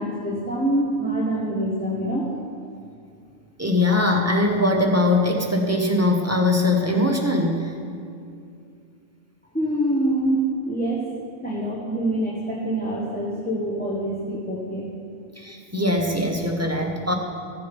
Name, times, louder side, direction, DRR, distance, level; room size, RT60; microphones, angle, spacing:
voice 1, 0.0-2.3 9.5-11.1 11.4-14.9, right 1 dB, 5° left, -7 dB, 1.4 m, -25 dB
voice 2, 3.6-7.7 15.4-17.1, left 2 dB, 15° right, 0 dB, 1.1 m, -21 dB
14.5 x 7.7 x 5.3 m, 2.4 s
omnidirectional pair, 1.3 m